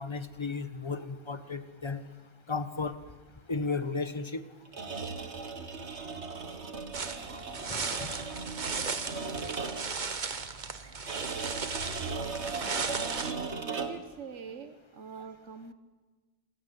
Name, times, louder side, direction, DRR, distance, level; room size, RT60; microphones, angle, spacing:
voice 1, 0.0-2.0 2.5-3.0 3.5-4.4 7.3-7.4 7.7-8.2 9.3-9.7 11.5-11.6, left 4 dB, 25° left, 12 dB, 1.1 m, -35 dB
sound 1, 4.7-10.0 11.1-14.1, right 4 dB, 75° right, 1.9 m, -37 dB
sound 2, 6.9-13.3, right 5 dB, 40° right, 1.2 m, -36 dB
voice 2, 12.9-15.7, right 6 dB, 90° right, 9 dB, 1.5 m, -44 dB
26.5 x 16.0 x 9.2 m, 1.3 s
omnidirectional pair, 1.2 m